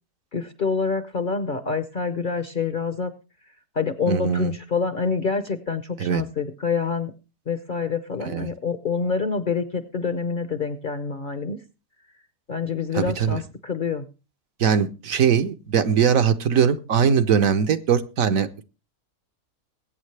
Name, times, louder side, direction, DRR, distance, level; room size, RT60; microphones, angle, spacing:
voice 1, 0.3-3.1 3.8-7.1 7.5-11.6 12.5-14.1, left 5 dB, 45° left, 11 dB, 0.7 m, -26 dB
voice 2, 4.1-4.5 6.0-6.2 8.2-8.5 12.9-13.4 14.6-18.6, right 7 dB, 65° right, 10 dB, 1.2 m, -21 dB
21.5 x 8.9 x 3.3 m, 0.31 s
omnidirectional pair, 1.6 m